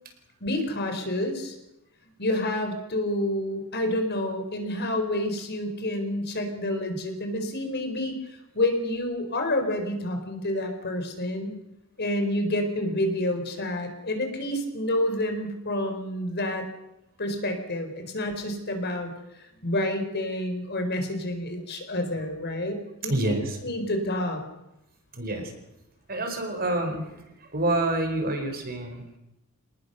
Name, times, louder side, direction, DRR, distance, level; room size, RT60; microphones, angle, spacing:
voice 1, 0.4-1.5 2.2-8.2 8.5-11.6 12.0-16.6 17.2-19.1 19.6-23.2 23.6-24.4, left 1 dB, 50° left, 5 dB, 4.2 m, -28 dB
voice 2, 23.1-23.6 25.1-25.5 26.1-27.0 27.5-29.2, right 1 dB, 45° right, 5 dB, 4.8 m, -27 dB
26.5 x 19.5 x 6.8 m, 0.88 s
head